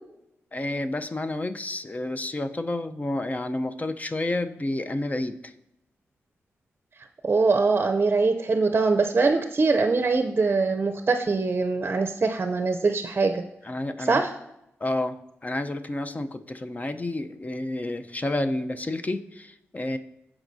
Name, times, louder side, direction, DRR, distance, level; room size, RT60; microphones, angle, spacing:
voice 1, 0.5-5.5 13.6-14.2 14.8-15.2 15.4-20.0, left 2 dB, 30° left, 8 dB, 0.7 m, -30 dB
voice 2, 7.2-13.4 14.0-14.3, right 3 dB, 45° right, 6 dB, 0.6 m, -23 dB
14.5 x 4.9 x 2.7 m, 0.84 s
cardioid pair, 50°, 5 cm